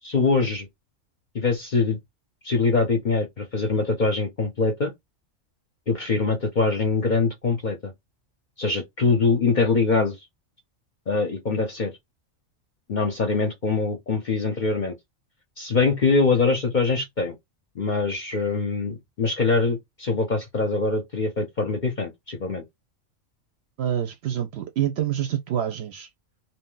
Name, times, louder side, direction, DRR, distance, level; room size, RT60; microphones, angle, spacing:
voice 1, 0.0-0.7 1.3-2.0 2.4-4.9 5.9-7.9 8.6-10.2 11.1-11.9 12.9-15.0 15.6-17.4 17.8-22.6, left 4 dB, 50° left, 0.6 m, -23 dB
voice 2, 23.8-26.1, right 10 dB, 65° right, 0.7 m, -27 dB
2.6 x 2.1 x 3.7 m
omnidirectional pair, 1.4 m